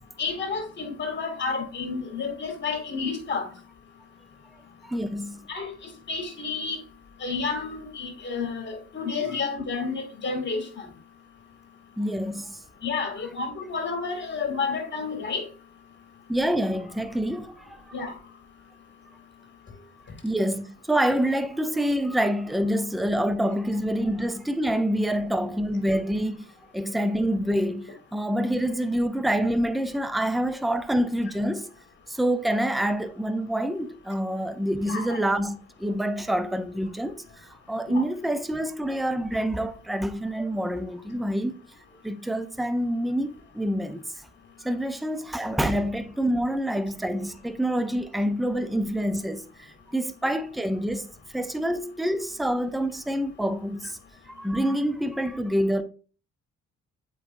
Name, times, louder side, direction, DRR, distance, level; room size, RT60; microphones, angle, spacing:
voice 1, 0.2-3.5 5.5-5.7 6.1-6.8 7.2-10.8 12.8-15.4 17.9-18.1 34.8-35.2 37.9-38.0, left 4 dB, 35° left, 2.3 m, -30 dB
voice 2, 4.8-5.4 12.0-12.6 16.3-17.6 20.2-26.4 26.7-31.7 32.1-41.6 42.0-44.0 44.6-49.4 49.9-51.1 51.3-54.0 54.3-55.8, equal, ahead, 0.5 m, -27 dB
7.5 x 4.8 x 2.6 m
cardioid pair, 90°, 30 cm